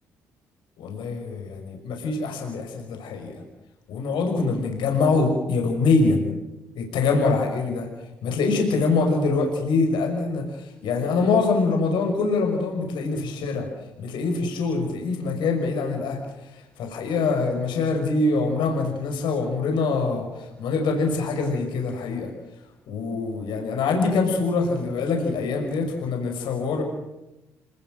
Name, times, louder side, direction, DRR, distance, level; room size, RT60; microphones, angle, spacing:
voice 1, 0.8-3.4 3.9-6.2 6.7-7.9 8.2-13.7 14.0-22.3 22.9-26.8, left 3 dB, 70° left, 3 dB, 5.7 m, -24 dB
27.5 x 19.5 x 7.8 m, 0.97 s
hypercardioid pair, 50°, 8 cm